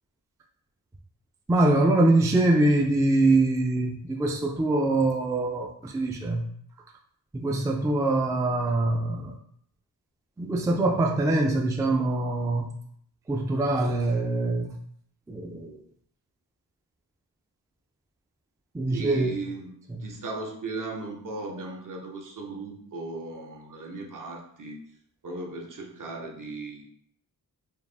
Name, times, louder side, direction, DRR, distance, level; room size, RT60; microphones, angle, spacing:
voice 1, 1.5-6.4 7.3-9.3 10.4-12.7 13.3-14.7 15.3-15.8 18.7-19.3 19.9-20.1, right 2 dB, 10° right, 1 dB, 0.3 m, -24 dB
voice 2, 18.9-19.7 20.0-24.8 25.2-26.8, right 3 dB, 55° right, 0 dB, 0.8 m, -37 dB
4.6 x 2.5 x 3.4 m, 0.65 s
wide cardioid pair, 160°, 37 cm